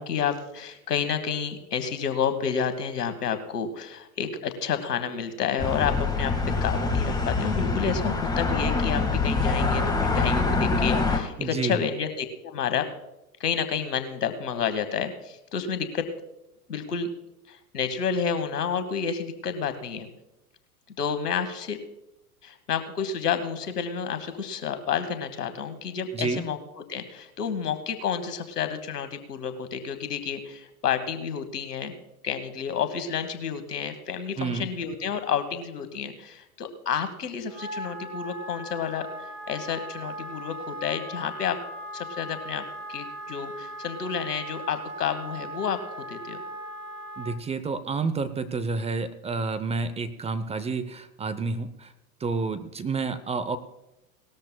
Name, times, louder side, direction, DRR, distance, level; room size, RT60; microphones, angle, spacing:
voice 1, 0.0-6.3 6.6-12.9 13.4-16.0 16.7-17.1 17.5-20.1 21.0-21.8 22.4-26.6 26.9-31.9 32.2-41.6 41.9-46.4, left 7 dB, 90° left, 9 dB, 1.4 m, -30 dB
sound 1, 5.6-11.2, left 3 dB, 10° left, 1.7 m, -25 dB
voice 2, 11.4-11.8 26.1-26.5 34.4-34.7 47.2-51.9 52.2-53.6, right 4 dB, 15° right, 12 dB, 0.6 m, -29 dB
Wind instrument woodwind instrument, 37.5-47.4, right 1 dB, 30° right, 2.0 m, -38 dB
19.0 x 13.0 x 2.2 m, 0.92 s
hypercardioid pair, 100°, 46 cm